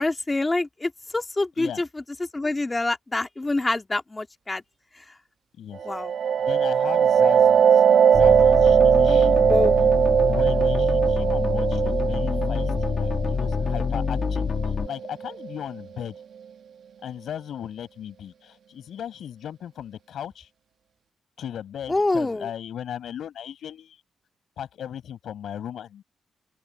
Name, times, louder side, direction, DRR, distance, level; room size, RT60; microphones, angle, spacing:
voice 1, 0.0-1.9 2.3-4.6 5.9-6.1 9.4-9.8 21.9-22.5, left 2 dB, 15° left, 2.0 m, -26 dB
voice 2, 5.6-5.9 6.4-7.8 8.1-9.4 10.3-16.2 17.0-20.5 21.4-24.0 24.6-26.0, left 9 dB, 80° left, 5.3 m, -37 dB
sound 1, 5.8-15.3, right 8 dB, 70° right, 1.3 m, -20 dB
sound 2, 8.1-14.9, left 6 dB, 45° left, 1.5 m, -26 dB
open air
wide cardioid pair, 140°, 0 cm